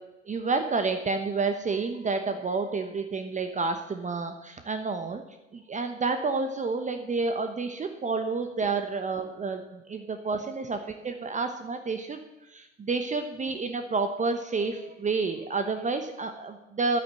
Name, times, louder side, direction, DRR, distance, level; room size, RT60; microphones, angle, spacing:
voice 1, 0.3-5.2 5.5-12.2 12.5-17.0, right 4 dB, 20° right, 7 dB, 1.1 m, -29 dB
10.5 x 9.3 x 7.5 m, 0.96 s
hypercardioid pair, 85°, 38 cm